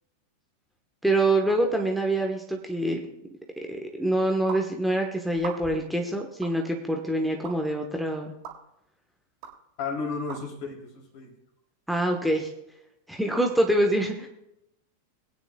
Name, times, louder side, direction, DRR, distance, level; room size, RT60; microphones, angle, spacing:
voice 1, 1.0-3.0 3.7-8.3 11.9-12.5 13.1-14.3, right 1 dB, ahead, 2 dB, 1.2 m, -25 dB
sound 1, 4.5-4.6 5.3-5.9 6.4-6.6 7.4-7.5 8.4-8.6 9.4-9.5 10.3-10.4, right 7 dB, 45° right, 2.2 m, -38 dB
voice 2, 9.8-11.3, left 4 dB, 50° left, 2 dB, 3.1 m, -33 dB
22.0 x 9.4 x 2.3 m, 0.84 s
figure-of-eight pair, 90°, 0 cm